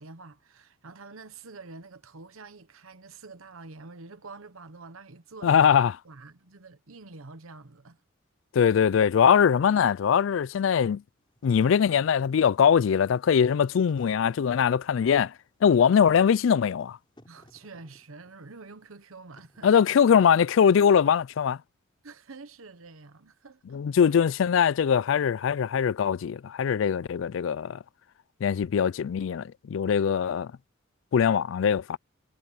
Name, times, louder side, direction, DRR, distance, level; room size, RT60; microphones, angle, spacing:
voice 1, 0.0-5.7 6.0-8.0 17.3-19.8 22.0-23.8, right 3 dB, 90° right, 1.1 m, -47 dB
voice 2, 5.4-5.9 8.5-11.0 11.4-15.3 15.6-17.0 19.6-21.6 23.7-27.8 28.4-30.5 31.1-32.0, left 7 dB, 70° left, 0.3 m, -22 dB
Wind / Fire, 11.2-20.7, equal, 25° left, 6.9 m, -59 dB
head